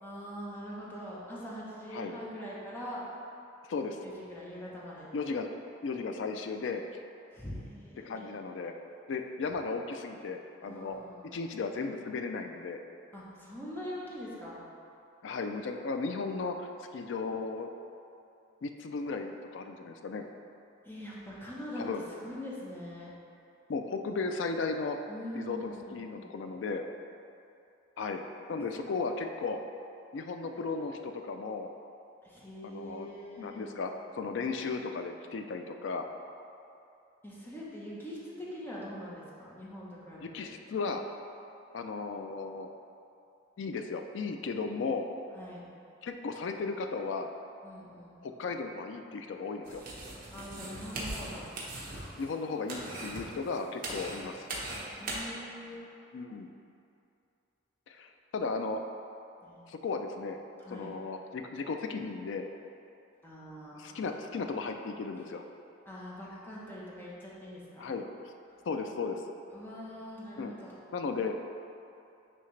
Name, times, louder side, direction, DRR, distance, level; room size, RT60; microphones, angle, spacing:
voice 1, 0.0-3.0 4.0-5.1 7.3-8.3 10.6-11.4 13.1-14.6 20.8-21.8 22.2-23.1 25.1-26.3 28.7-28.8 32.2-33.7 37.2-40.5 45.3-45.6 47.6-48.2 50.3-51.5 54.9-55.8 59.4-59.7 60.6-60.9 63.2-64.0 65.8-67.9 69.5-70.7, equal, 10° left, -7 dB, 1.0 m, -43 dB
voice 2, 5.1-5.5 5.8-6.8 8.0-8.7 9.1-11.0 11.3-12.8 15.2-17.7 18.6-20.2 21.8-22.1 23.7-25.0 25.3-26.8 28.0-28.2 28.5-29.6 30.1-31.7 32.6-36.1 40.2-41.0 41.7-42.7 43.6-45.1 46.0-47.3 48.2-49.8 52.2-54.5 56.1-56.5 57.9-58.8 59.7-60.4 60.7-62.5 63.7-65.4 67.8-68.1 68.7-69.2 70.4-70.5 70.9-71.4, left 4 dB, 65° left, 5 dB, 0.4 m, -35 dB
sound 1, 49.7-55.2, right 2 dB, 45° right, 1.1 m, -41 dB
9.3 x 3.3 x 3.2 m, 2.7 s
head